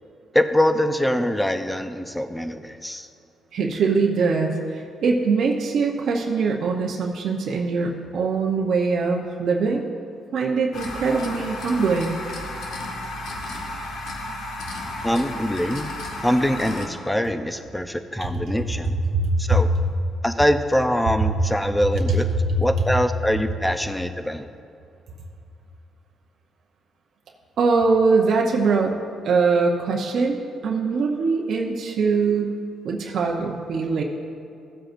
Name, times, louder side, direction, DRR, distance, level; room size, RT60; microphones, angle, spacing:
voice 1, 0.3-3.1 15.0-15.9 16.2-19.0 19.4-19.7 20.2-22.3 22.6-24.5, equal, 5° left, 8 dB, 0.5 m, -23 dB
voice 2, 3.5-9.8 10.3-12.2 19.1-19.6 27.6-28.9 29.2-30.4 30.6-32.5 32.8-34.0, right 4 dB, 65° right, 0 dB, 0.7 m, -22 dB
sound 1, 10.7-16.9, left 1 dB, 75° left, 1.3 m, -33 dB
15.5 x 7.7 x 2.6 m, 2.5 s
cardioid pair, 90°, 0 cm